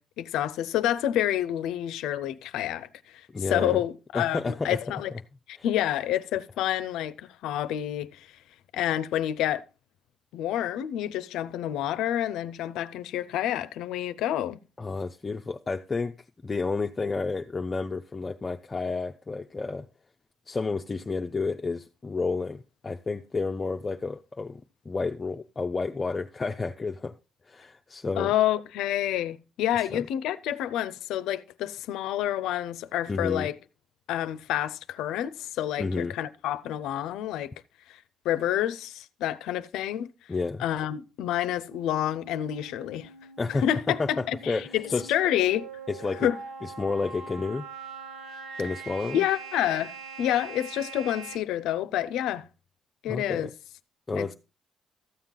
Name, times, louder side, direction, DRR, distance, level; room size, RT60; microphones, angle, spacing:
voice 1, 0.0-5.1 5.5-8.3 8.7-9.6 10.3-14.6 28.2-33.6 34.1-37.5 37.9-38.0 38.2-40.1 40.6-43.1 43.5-45.7 46.2-46.4 49.1-52.4 53.0-53.5 54.2-54.3, left 12 dB, 90° left, 0.5 m, -28 dB
voice 2, 3.3-3.8 4.1-4.8 14.8-16.2 16.4-19.9 20.5-24.6 24.9-27.2 27.5-28.3 29.9-30.0 33.1-33.5 35.8-36.2 40.3-40.6 43.4-43.6 44.0-45.1 45.9-46.3 46.6-47.7 48.6-49.2 53.1-53.5 54.1-54.3, left 4 dB, 30° left, 0.5 m, -30 dB
sound 1, 41.7-51.4, right 4 dB, 75° right, 1.3 m, -43 dB
13.5 x 7.4 x 3.8 m
cardioid pair, 90°, 0 cm